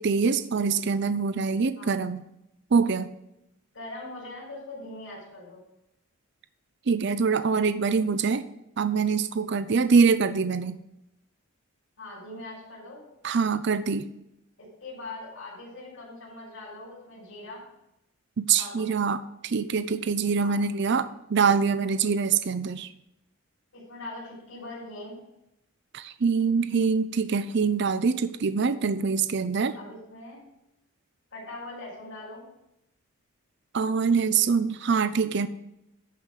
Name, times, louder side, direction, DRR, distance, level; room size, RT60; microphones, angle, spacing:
voice 1, 0.0-2.2 2.7-3.1 6.9-8.4 8.8-10.8 13.2-14.1 18.4-22.9 25.9-29.8 33.7-35.5, right 5 dB, 50° right, 12 dB, 0.4 m, -24 dB
voice 2, 3.7-5.6 12.0-13.0 14.8-17.6 18.6-18.9 20.4-20.5 23.7-25.2 29.7-30.4 31.3-32.4, left 2 dB, 65° left, -8 dB, 4.7 m, -41 dB
11.5 x 5.2 x 6.4 m, 0.85 s
head